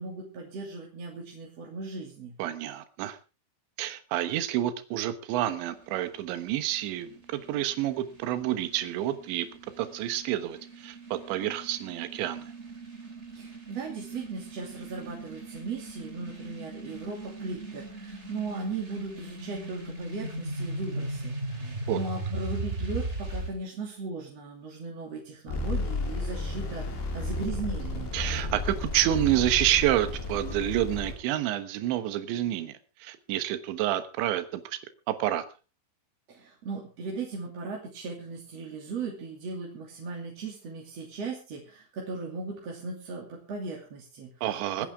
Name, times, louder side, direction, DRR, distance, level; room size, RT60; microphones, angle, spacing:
voice 1, 0.0-2.4 13.3-21.6 21.9-28.1 36.3-44.3 44.8-44.9, right 4 dB, 40° right, -2 dB, 3.1 m, -37 dB
voice 2, 2.4-3.2 3.8-9.5 9.8-12.5 21.6-22.0 28.1-34.8 35.1-35.4 44.4-44.9, right 13 dB, 75° right, 10 dB, 3.5 m, -29 dB
sound 1, 5.6-23.5, right 1 dB, 20° right, 2.4 m, -39 dB
sound 2, 25.5-31.1, left 2 dB, 80° left, 7.1 m, -33 dB
25.5 x 10.0 x 3.6 m, 0.32 s
omnidirectional pair, 5.4 m